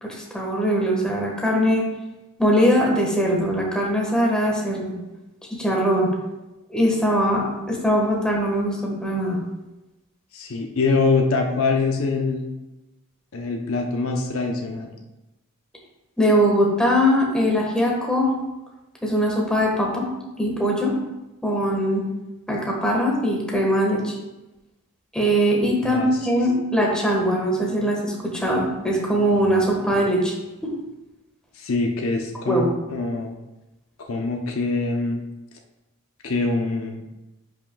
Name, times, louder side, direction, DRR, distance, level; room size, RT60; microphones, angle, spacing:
voice 1, 0.0-1.8 2.4-5.0 5.5-6.1 6.7-9.4 16.2-18.3 19.0-20.1 20.4-20.9 21.4-22.0 22.5-24.1 25.1-30.3 30.6-30.7 32.5-32.7, equal, 5° left, -2 dB, 1.4 m, -21 dB
voice 2, 10.3-12.5 13.3-14.9 25.8-26.1 31.5-32.6 32.9-33.3 34.1-35.2 36.2-37.0, left 3 dB, 80° left, 2 dB, 0.8 m, -24 dB
10.5 x 5.8 x 2.3 m, 1.0 s
head